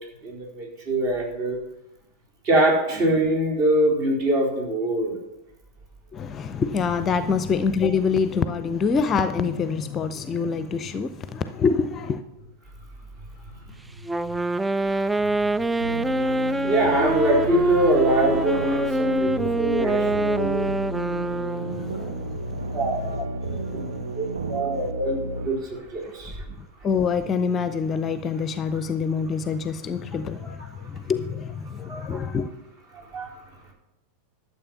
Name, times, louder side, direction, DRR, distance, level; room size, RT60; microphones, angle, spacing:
voice 1, 0.2-1.6 2.4-5.2 14.8-20.7 22.7-23.0 23.5-23.8 24.1-26.4 30.4-30.5 31.8-32.2 32.9-33.4, right 1 dB, 40° right, 4.3 m, -24 dB
voice 2, 6.1-12.2 21.6-22.8 23.6-24.2 24.5-24.6 26.6-32.5, left 5 dB, 25° left, 0.6 m, -26 dB
Wind instrument woodwind instrument, 14.0-21.9, right 1 dB, 5° right, 0.3 m, -25 dB
sound 1, 15.8-25.5, right 2 dB, 65° right, 0.9 m, -32 dB
12.0 x 7.5 x 5.9 m
figure-of-eight pair, 90°, 0 cm